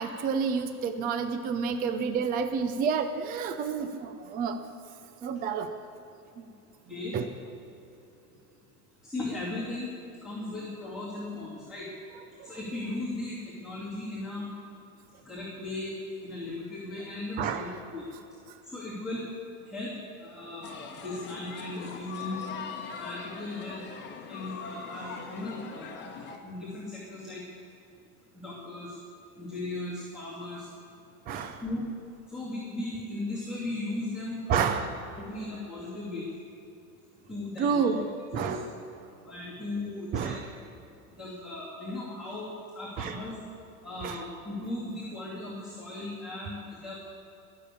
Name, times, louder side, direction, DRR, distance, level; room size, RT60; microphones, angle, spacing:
voice 1, 0.0-4.6 5.2-5.7 6.4-6.5 7.1-7.2 12.4-12.5 17.4-17.7 31.3-31.6 34.5-34.9 37.6-38.0 38.3-38.7 40.1-40.4 43.0-43.2 44.0-44.2, right 6 dB, 20° right, 8 dB, 0.5 m, -29 dB
voice 2, 9.0-9.9 10.2-11.9 12.4-14.5 15.2-15.9 16.2-18.0 18.6-19.3 19.7-22.4 22.9-23.8 24.3-25.9 26.4-27.4 28.3-29.0 29.4-30.7 31.6-31.8 32.3-34.8 35.2-36.3 37.3-38.0 38.4-38.6 39.2-40.4 41.2-43.4 43.8-47.0, left 2 dB, ahead, -9 dB, 2.7 m, -37 dB
Kids Playing, 20.6-26.4, left 6 dB, 25° left, 1.4 m, -41 dB
19.0 x 7.0 x 8.6 m, 2.8 s
supercardioid pair, 145°, 44 cm